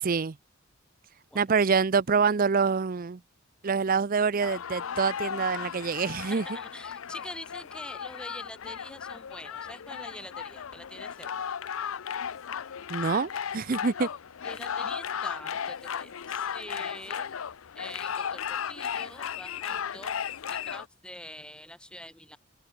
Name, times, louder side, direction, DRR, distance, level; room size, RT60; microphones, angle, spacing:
voice 1, 0.0-0.4 1.3-3.2 3.6-6.4 12.9-14.1, right 5 dB, 45° right, 0.5 m, -26 dB
sound 1, 4.4-20.9, left 8 dB, 75° left, 0.6 m, -35 dB
voice 2, 6.2-11.5 14.4-17.3 17.8-20.1 20.5-22.4, left 1 dB, 5° left, 3.5 m, -45 dB
open air
head